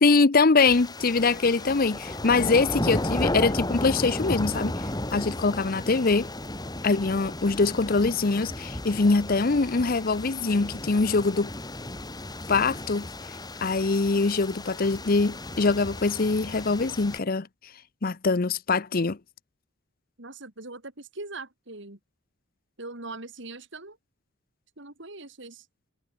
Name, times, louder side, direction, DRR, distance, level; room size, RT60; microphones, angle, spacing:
voice 1, 0.0-4.7 5.1-6.3 6.8-11.5 12.5-13.1 13.6-17.5 18.0-19.2, left 3 dB, 45° left, 0.7 m, -23 dB
sound 1, 0.6-17.2, left 1 dB, 20° left, 2.3 m, -34 dB
voice 2, 20.2-22.0 22.8-24.0 24.8-25.7, right 2 dB, 60° right, 3.7 m, -41 dB
head